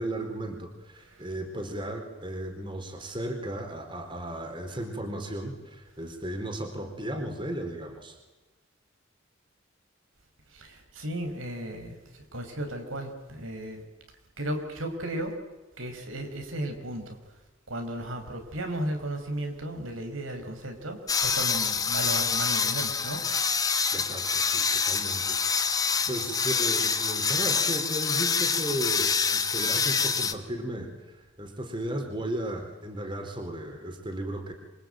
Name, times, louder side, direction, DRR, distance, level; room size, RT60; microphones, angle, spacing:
voice 1, 0.0-8.2 23.9-34.5, right 1 dB, 25° right, 4 dB, 4.2 m, -35 dB
voice 2, 10.5-13.8 14.4-15.3 15.8-17.2 17.7-23.2 26.1-26.4, right 1 dB, 85° right, 4 dB, 5.1 m, -35 dB
sound 1, 21.1-30.3, left 5 dB, 20° left, 1.3 m, -26 dB
27.0 x 23.5 x 9.2 m, 1.1 s
head